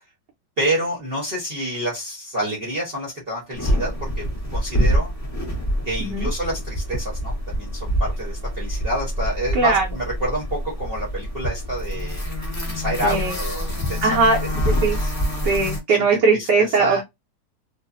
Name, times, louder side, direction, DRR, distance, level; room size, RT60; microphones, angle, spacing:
voice 1, 0.6-4.3 4.5-5.1 5.8-12.2 12.7-14.5 14.9-15.1 15.9-16.1 16.3-17.0, equal, 40° right, 0.9 m, -28 dB
sound 1, 3.5-15.8, equal, 20° left, 0.5 m, -26 dB
voice 2, 9.5-9.9 13.0-13.3 14.0-14.4 14.8-15.0 15.4-17.0, right 4 dB, 75° right, 1.3 m, -19 dB
3.2 x 2.1 x 2.4 m
omnidirectional pair, 2.0 m